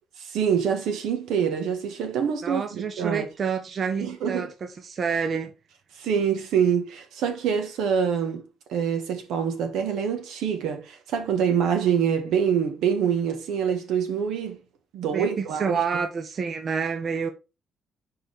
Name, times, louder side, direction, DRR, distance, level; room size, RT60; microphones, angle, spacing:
voice 1, 0.3-3.3 4.0-4.5 6.0-8.4 8.7-14.6 14.9-15.8, right 7 dB, 85° right, 1.3 m, -25 dB
voice 2, 2.4-4.5 4.8-5.5 15.1-17.3, right 6 dB, 50° right, 0.8 m, -28 dB
4.6 x 4.4 x 4.9 m
cardioid pair, 90°, 0 cm